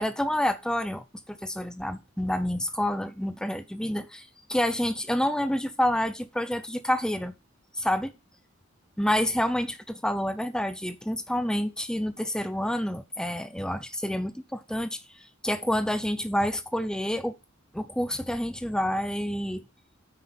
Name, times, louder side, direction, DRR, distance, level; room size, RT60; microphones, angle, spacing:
voice 1, 0.0-7.3 7.8-8.1 9.0-15.0 15.4-17.4 17.7-19.6, equal, 5° left, 0.7 m, -28 dB
9.6 x 4.6 x 5.9 m
head